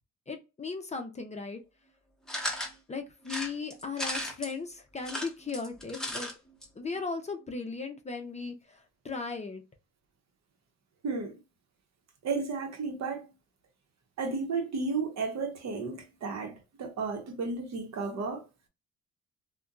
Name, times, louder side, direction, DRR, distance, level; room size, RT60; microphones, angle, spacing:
voice 1, 0.3-1.6 2.9-6.3 6.8-9.6, left 4 dB, 25° left, 0.5 m, -37 dB
sound 1, 2.3-2.7 3.3-4.5 5.0-6.3 6.6-6.7 6.9-7.0, left 1 dB, ahead, 0.9 m, -35 dB
voice 2, 11.0-11.4 12.2-13.3 14.2-18.4, right 4 dB, 60° right, 0.8 m, -33 dB
2.7 x 2.2 x 2.3 m
cardioid pair, 90°, 30 cm